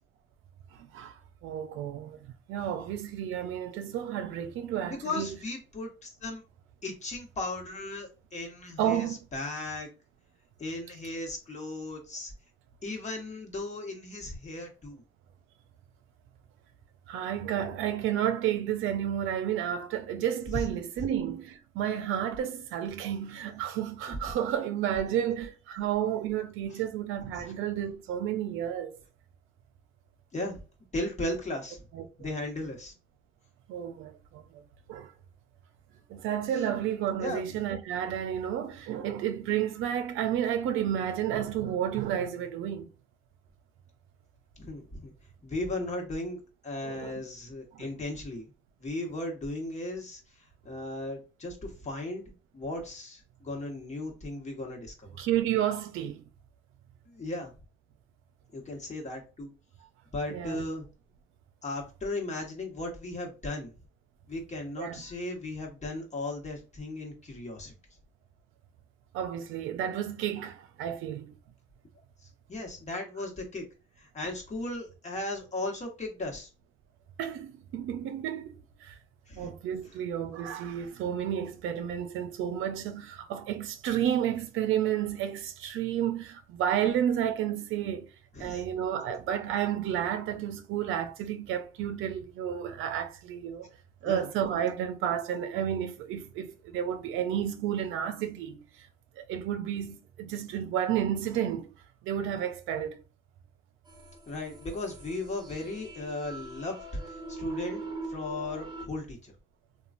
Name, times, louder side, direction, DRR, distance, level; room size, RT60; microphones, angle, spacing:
voice 1, 0.7-2.2 2.5-5.3 8.8-9.2 17.1-29.0 31.9-32.3 33.7-34.6 34.9-35.1 36.1-42.9 46.8-47.2 47.7-47.8 55.2-56.2 60.3-60.7 64.8-65.0 69.1-71.3 77.2-79.0 79.4-88.1 88.4-93.7 94.0-98.6 99.2-101.7 102.0-103.0, right 10 dB, 90° right, 0.5 m, -31 dB
voice 2, 4.9-6.4 6.8-9.9 10.6-12.3 12.8-15.0 20.5-20.7 21.0-21.1 30.3-30.6 30.9-31.8 32.2-32.9 37.2-37.6 39.0-39.1 44.6-45.1 45.4-48.5 48.8-50.2 50.6-52.2 52.5-55.2 57.1-57.5 58.5-59.5 60.1-60.8 61.6-63.7 64.3-67.7 72.2-73.6 74.0-76.5 79.3-79.5 88.4-88.6 94.0-94.3 104.3-109.3, left 2 dB, 35° left, 1.1 m, -36 dB
sound 1, 103.9-108.9, right 3 dB, 20° right, 0.9 m, -42 dB
3.0 x 2.3 x 2.4 m
cardioid pair, 90°, 20 cm